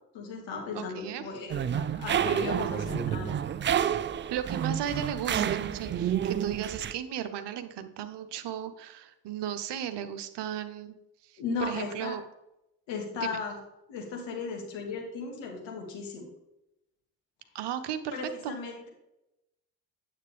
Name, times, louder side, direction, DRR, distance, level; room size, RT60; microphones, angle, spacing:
voice 1, 0.1-3.3 11.4-12.2 12.9-13.6 13.9-16.3 18.1-18.9, left 4 dB, 65° left, 1 dB, 2.2 m, -36 dB
voice 2, 0.7-1.2 4.3-10.9 11.2-11.4 11.7-12.2 13.1-13.4 17.5-18.5, right 9 dB, 55° right, 10 dB, 0.9 m, -35 dB
sound 1, 1.5-6.9, right 9 dB, 25° right, 0.4 m, -29 dB
9.2 x 7.7 x 3.4 m, 0.90 s
figure-of-eight pair, 40°, 49 cm